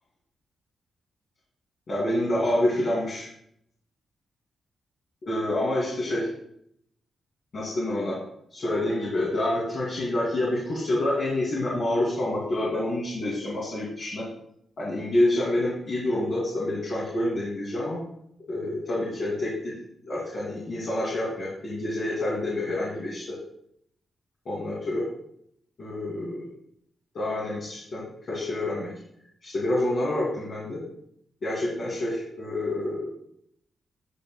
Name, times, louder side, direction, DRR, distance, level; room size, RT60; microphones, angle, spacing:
voice 1, 1.9-3.3 5.2-6.3 7.5-8.2 8.5-14.3 14.8-18.0 18.5-19.8 20.1-23.4 24.5-25.0 25.8-26.5 27.1-28.9 29.4-30.8 31.4-33.1, left 1 dB, 55° left, -6 dB, 2.4 m, -27 dB
9.9 x 6.6 x 2.2 m, 0.72 s
cardioid pair, 120°, 0 cm